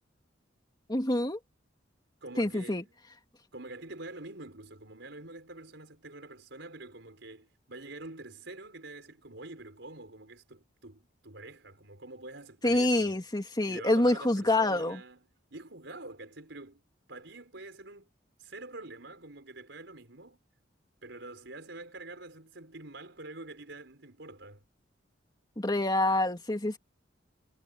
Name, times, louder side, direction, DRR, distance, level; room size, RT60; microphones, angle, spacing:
voice 1, 0.9-1.4 2.4-2.8 12.6-15.0 25.6-26.8, left 1 dB, 25° left, 2.3 m, -26 dB
voice 2, 2.2-3.0 3.5-13.2 13.7-16.8 17.1-18.1 18.4-20.4 21.0-24.6, right 2 dB, 70° right, 5.6 m, -46 dB
head